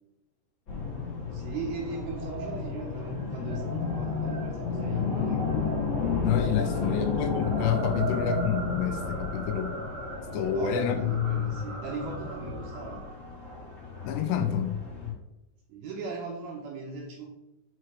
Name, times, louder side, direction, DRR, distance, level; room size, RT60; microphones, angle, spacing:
sound 1, 0.7-15.1, left 6 dB, 45° left, 1.7 m, -32 dB
voice 1, 1.3-5.7 6.7-7.1 10.5-13.0 15.7-17.3, right 4 dB, 75° right, -1 dB, 2.3 m, -38 dB
sound 2, 1.8-14.3, right 4 dB, 50° right, 2.3 m, -40 dB
voice 2, 6.2-9.7 10.3-11.1 14.0-14.8 15.1-15.2, left 8 dB, 85° left, 6 dB, 2.6 m, -28 dB
6.4 x 4.6 x 3.2 m, 0.93 s
omnidirectional pair, 5.1 m